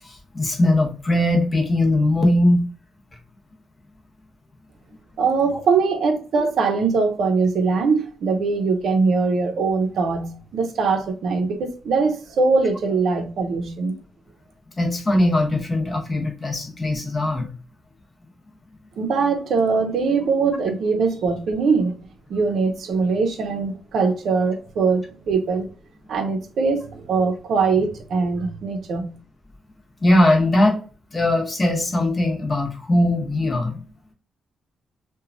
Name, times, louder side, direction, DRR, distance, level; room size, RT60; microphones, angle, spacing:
voice 1, 0.0-2.7 14.8-17.5 30.0-30.8 31.1-33.8, left 1 dB, 25° left, 0.7 m, -20 dB
voice 2, 5.2-14.0 19.0-22.0 22.3-25.7 26.1-29.1, right 4 dB, 65° right, 0.6 m, -22 dB
3.0 x 2.2 x 2.5 m
cardioid pair, 135°, 0 cm